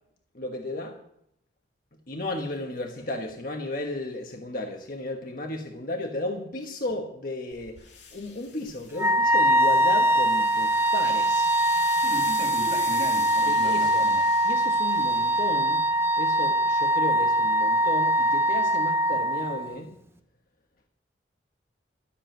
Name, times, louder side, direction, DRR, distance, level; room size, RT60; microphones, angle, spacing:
voice 1, 0.3-1.0 2.1-7.8 8.1-11.5 13.5-14.1 14.4-15.9 16.2-19.9, left 1 dB, 50° left, 1.3 m, -34 dB
sound 1, 7.5-16.1, left 6 dB, 70° left, 2.2 m, -44 dB
Wind instrument woodwind instrument, 9.0-19.7, right 1 dB, 15° right, 0.8 m, -23 dB
voice 2, 12.0-14.3, right 1 dB, 35° right, 2.6 m, -36 dB
13.5 x 7.3 x 9.1 m
head